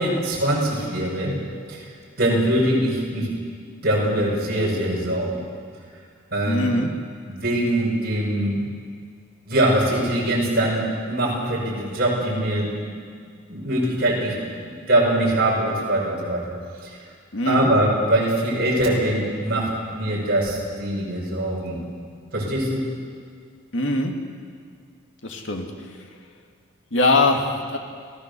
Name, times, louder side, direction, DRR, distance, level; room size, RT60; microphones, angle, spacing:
voice 1, 0.0-1.3 1.7-1.9 2.2-3.3 3.8-5.4 6.3-6.7 7.2-8.6 9.5-12.7 13.5-14.4 14.6-16.5 16.8-17.0 17.4-21.8 22.3-22.8, right 1 dB, 50° right, -2 dB, 5.9 m, -22 dB
voice 2, 6.5-6.9 17.3-17.7 23.7-24.1 25.2-25.7 26.9-27.4 27.7-27.8, left 2 dB, 65° left, 2 dB, 2.3 m, -21 dB
28.5 x 16.0 x 6.9 m, 2.1 s
head